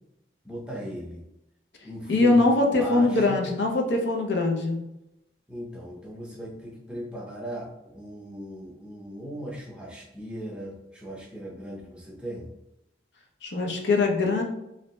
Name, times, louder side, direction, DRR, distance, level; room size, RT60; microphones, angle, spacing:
voice 1, 0.4-1.2 1.8-2.5 2.8-3.4 5.5-12.5, equal, 5° right, -3 dB, 0.6 m, -38 dB
voice 2, 2.1-4.8 13.4-14.4, left 2 dB, 85° left, 1 dB, 0.7 m, -22 dB
3.2 x 2.6 x 3.0 m, 0.88 s
head